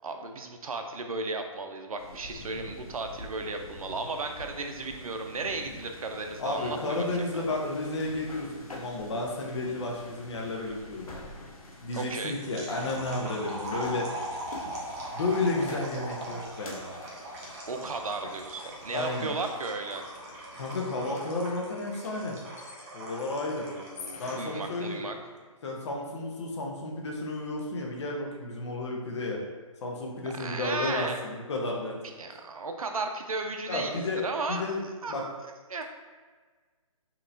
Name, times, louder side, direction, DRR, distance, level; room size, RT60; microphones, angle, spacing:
voice 1, 0.0-7.0 7.5-7.6 11.9-12.4 17.7-20.0 23.6-25.1 30.2-31.2 32.2-34.8 35.0-35.3 35.7-35.8, right 3 dB, 80° right, 4 dB, 0.6 m, -35 dB
sound 1, 2.0-20.9, left 1 dB, 85° left, 1.0 m, -47 dB
voice 2, 6.4-11.1 11.8-14.1 15.1-16.9 18.9-19.3 20.5-22.4 22.9-23.7 24.2-25.0 25.6-29.4 29.8-31.9 33.7-34.2 34.5-34.8 35.1-35.2, left 2 dB, 55° left, 0 dB, 1.0 m, -32 dB
sound 2, 11.9-24.5, right 1 dB, 25° right, 0.9 m, -41 dB
sound 3, 17.5-23.1 23.8-25.6, left 4 dB, 25° left, 0.4 m, -49 dB
5.7 x 3.0 x 2.7 m, 1.4 s
hypercardioid pair, 155°, 18 cm